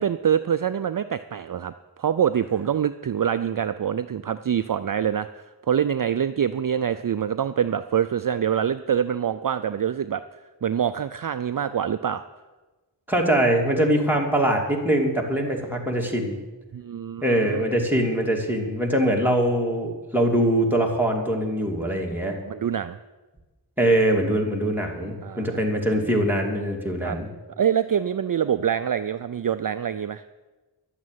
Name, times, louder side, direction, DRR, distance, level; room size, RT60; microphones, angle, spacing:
voice 1, 0.0-1.7 2.0-5.3 5.7-10.2 10.6-12.2 16.7-17.6 22.5-23.0 25.2-25.6 27.0-27.2 27.6-30.2, right 8 dB, 50° right, 11 dB, 0.5 m, -25 dB
voice 2, 13.1-16.4 17.2-22.4 23.8-27.3, right 1 dB, 5° right, -1 dB, 2.8 m, -23 dB
12.0 x 8.5 x 9.4 m, 1.2 s
wide cardioid pair, 70°, 43 cm